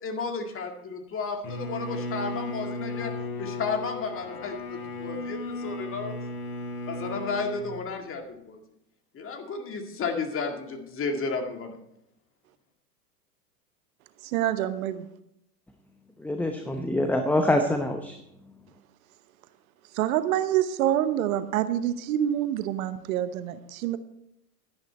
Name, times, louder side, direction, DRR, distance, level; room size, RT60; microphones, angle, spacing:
voice 1, 0.0-3.1 3.4-6.1 6.9-8.6 9.1-11.8, left 4 dB, 25° left, 5 dB, 2.0 m, -33 dB
Bowed string instrument, 1.4-7.7, left 2 dB, 45° left, 4.0 m, -35 dB
voice 2, 14.2-15.1 19.9-24.0, right 11 dB, 60° right, 13 dB, 1.0 m, -26 dB
voice 3, 16.2-18.2, left 1 dB, 5° left, 6 dB, 0.8 m, -25 dB
12.0 x 10.5 x 4.4 m, 0.78 s
hypercardioid pair, 100°, 47 cm